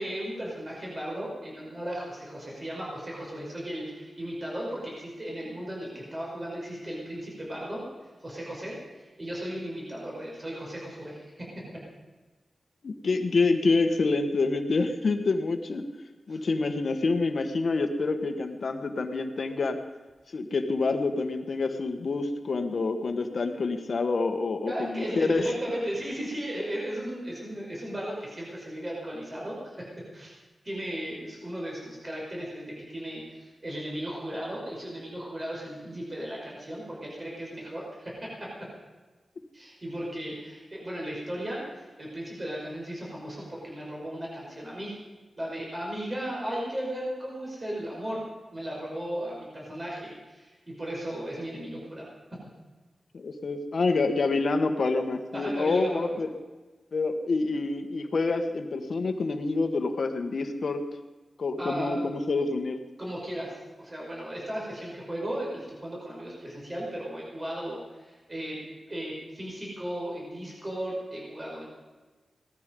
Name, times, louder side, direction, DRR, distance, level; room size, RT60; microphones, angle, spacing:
voice 1, 0.0-7.8 8.2-11.5 16.3-16.4 24.6-30.3 30.6-38.7 39.5-44.9 45.4-48.2 48.5-52.1 55.3-56.2 61.6-62.0 63.0-68.6 68.9-71.6, right 1 dB, 25° right, -3 dB, 5.4 m, -36 dB
voice 2, 12.8-15.8 16.3-19.8 20.3-25.5 53.1-56.3 56.9-60.8 61.4-62.8, left 3 dB, 60° left, 7 dB, 1.5 m, -27 dB
18.0 x 13.5 x 5.4 m, 1.3 s
wide cardioid pair, 120°, 0 cm